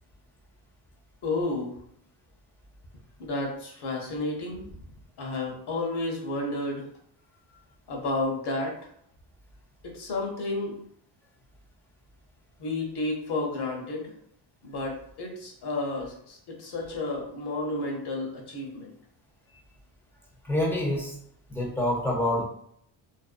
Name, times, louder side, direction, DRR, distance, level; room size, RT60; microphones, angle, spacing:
voice 1, 1.2-1.8 3.2-4.6 5.2-6.9 7.9-8.7 9.9-10.7 12.6-14.1 14.6-18.9, left 2 dB, 55° left, 0 dB, 0.8 m, -31 dB
voice 2, 20.4-21.2 21.5-22.4, left 1 dB, 5° left, -4 dB, 0.5 m, -26 dB
2.6 x 2.0 x 2.4 m, 0.69 s
cardioid pair, 125°, 49 cm